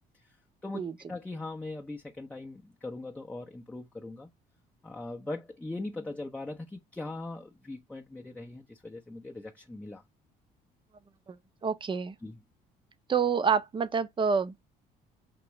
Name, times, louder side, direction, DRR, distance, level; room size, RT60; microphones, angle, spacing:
voice 1, 1.1-4.3 4.8-10.0 12.2-12.4, left 2 dB, 10° left, 0.6 m, -40 dB
voice 2, 11.6-12.2 13.1-14.6, right 6 dB, 30° right, 0.7 m, -27 dB
4.6 x 3.0 x 2.9 m
cardioid pair, 110°, 17 cm